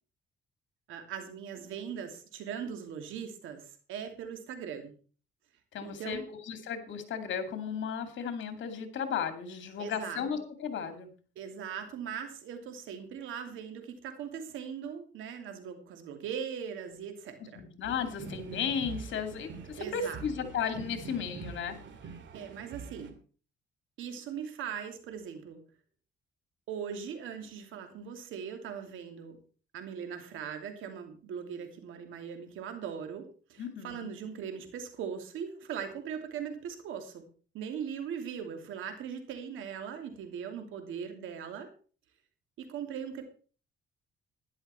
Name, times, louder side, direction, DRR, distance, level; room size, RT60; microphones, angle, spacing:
voice 1, 0.9-4.9 5.8-6.3 9.8-10.2 11.4-17.6 19.8-20.2 22.3-23.2 24.0-25.6 26.7-29.4 29.7-37.2 37.5-41.7 42.6-43.2, right 7 dB, 85° right, 6 dB, 2.8 m, -40 dB
voice 2, 5.7-11.1 17.5-21.8 33.6-34.1, left 7 dB, 70° left, 8 dB, 2.6 m, -35 dB
sound 1, 17.8-23.1, right 4 dB, 70° right, 2.2 m, -44 dB
12.5 x 11.0 x 4.4 m, 0.40 s
cardioid pair, 90°, 20 cm